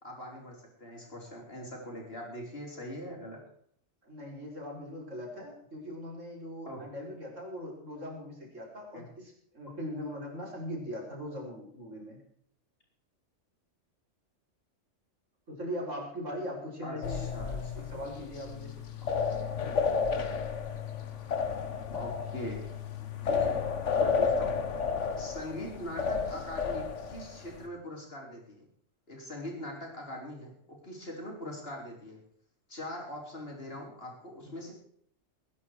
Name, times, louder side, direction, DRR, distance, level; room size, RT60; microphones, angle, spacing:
voice 1, 0.0-3.4 6.7-6.8 8.9-9.1 16.8-17.9 21.9-22.7 23.2-23.6 24.0-24.6 25.2-28.6 29.1-32.2 32.7-34.7, left 1 dB, 50° left, 0 dB, 4.7 m, -42 dB
voice 2, 4.0-12.2 15.5-18.8 34.4-34.5, equal, 75° right, -2 dB, 6.0 m, -40 dB
sound 1, 17.0-27.7, left 5 dB, 70° left, 1.6 m, -32 dB
20.5 x 10.5 x 4.9 m, 0.65 s
omnidirectional pair, 1.3 m